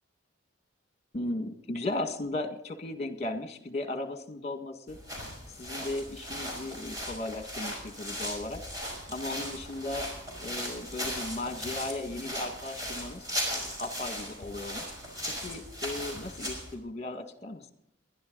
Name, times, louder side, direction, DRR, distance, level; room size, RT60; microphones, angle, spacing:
voice 1, 1.1-5.0 5.5-8.6 9.1-10.1 10.4-13.3 13.8-14.8 15.4-17.7, left 2 dB, 35° left, 7 dB, 1.7 m, -36 dB
sound 1, 4.9-16.7, equal, 20° right, 5.5 m, -37 dB
21.5 x 12.0 x 3.9 m, 0.74 s
head